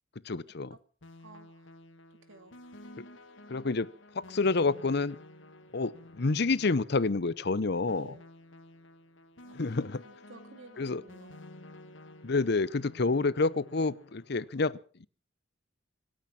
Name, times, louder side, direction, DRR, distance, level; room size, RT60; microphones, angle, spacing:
voice 1, 0.2-0.7 3.5-5.2 5.7-8.1 9.6-10.0 10.8-11.0 12.2-15.1, left 3 dB, 55° left, 0.7 m, -29 dB
sound 1, 1.0-14.5, left 1 dB, 70° left, 1.7 m, -52 dB
voice 2, 1.2-1.7 2.3-2.6 7.8-8.2 9.4-9.8 10.0-11.4, right 2 dB, 80° right, 2.4 m, -53 dB
26.5 x 9.0 x 5.9 m
head